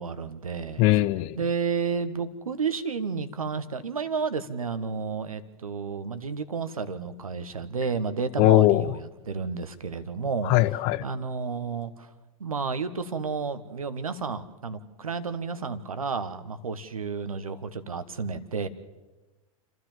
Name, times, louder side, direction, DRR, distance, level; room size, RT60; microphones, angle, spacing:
voice 1, 0.0-1.0 1.4-10.5 11.0-12.1 12.4-18.7, right 5 dB, 75° right, 1.4 m, -31 dB
voice 2, 0.8-1.4 8.4-8.9 10.4-11.1, left 16 dB, 40° left, 0.8 m, -20 dB
29.5 x 12.5 x 7.4 m
figure-of-eight pair, 90°, 18 cm